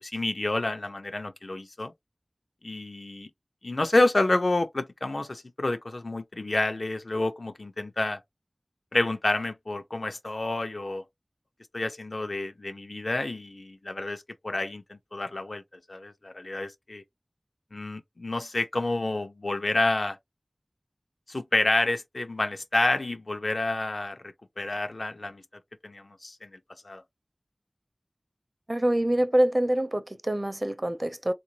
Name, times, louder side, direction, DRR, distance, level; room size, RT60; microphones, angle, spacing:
voice 1, 0.0-1.9 2.6-3.3 3.6-8.2 8.9-11.0 11.7-15.6 15.9-17.0 17.7-20.2 21.3-25.4 25.8-26.6 26.8-27.0, left 2 dB, 80° left, 0.6 m, -29 dB
voice 2, 28.7-31.3, right 1 dB, 40° right, 0.5 m, -25 dB
3.9 x 2.5 x 2.8 m
wide cardioid pair, 45°, 0 cm